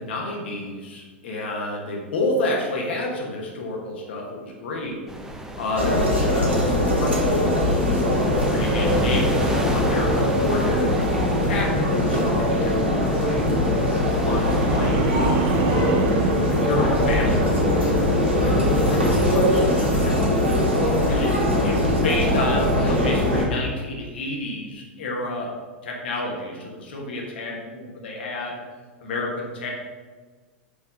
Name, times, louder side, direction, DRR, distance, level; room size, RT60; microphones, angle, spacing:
voice 1, 0.0-5.0 5.6-6.6 6.9-7.8 8.4-11.0 11.4-13.5 13.7-16.0 16.5-20.6 21.1-25.5 25.8-28.6 29.0-29.7, left 2 dB, 70° left, -1 dB, 1.2 m, -30 dB
sound 1, 5.1-19.3, right 1 dB, 10° right, 0.7 m, -31 dB
sound 2, 5.8-23.4, left 1 dB, 85° right, 1.8 m, -21 dB
sound 3, 14.2-17.6 18.0-18.4, right 8 dB, 45° right, 0.5 m, -28 dB
5.0 x 3.5 x 5.3 m, 1.4 s
hypercardioid pair, 95°, 6 cm